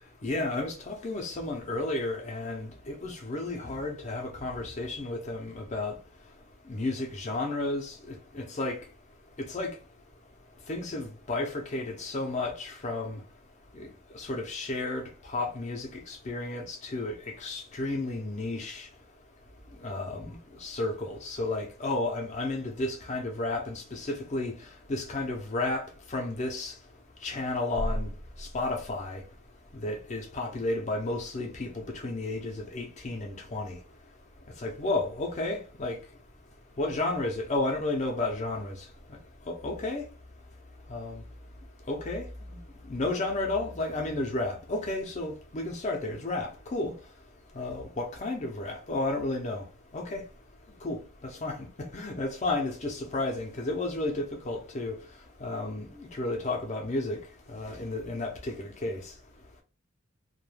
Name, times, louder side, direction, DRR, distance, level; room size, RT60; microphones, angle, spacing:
voice 1, 0.2-5.9 6.7-8.8 9.4-9.7 10.7-13.2 13.7-13.9 14.1-18.9 19.8-24.6 24.9-26.7 27.2-28.1 28.4-29.2 29.8-33.8 34.6-36.0 36.8-38.7 39.5-40.0 40.9-41.2 41.9-42.6 42.9-46.9 47.5-49.6 49.9-50.2 50.8-51.0 51.4-51.6 51.9-55.0 55.4-57.2 57.5-59.0, left 2 dB, 35° left, 0.5 m, -32 dB
2.2 x 2.1 x 3.1 m
head